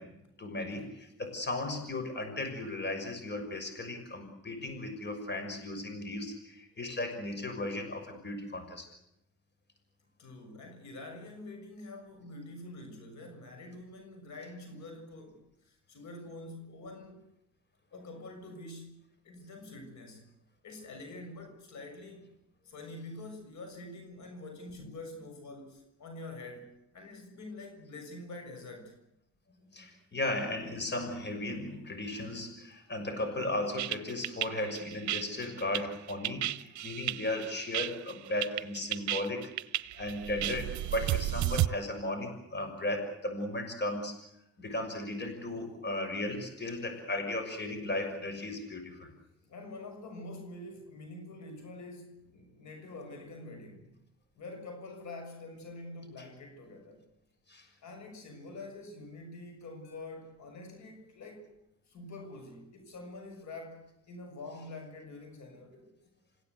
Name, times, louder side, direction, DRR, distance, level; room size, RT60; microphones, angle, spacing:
voice 1, 0.0-8.8 29.7-39.5 39.9-44.2 44.6-49.1 57.5-57.7, left 1 dB, 35° left, 6.5 m, -36 dB
voice 2, 10.2-17.3 17.9-20.2 20.6-22.3 22.6-29.0 49.4-53.9 54.4-57.0 57.8-61.5 61.9-65.9, left 2 dB, 70° left, 6.9 m, -46 dB
sound 1, 33.8-41.7, right 15 dB, 70° right, 0.8 m, -33 dB
28.0 x 16.5 x 8.2 m
cardioid pair, 90°, 30 cm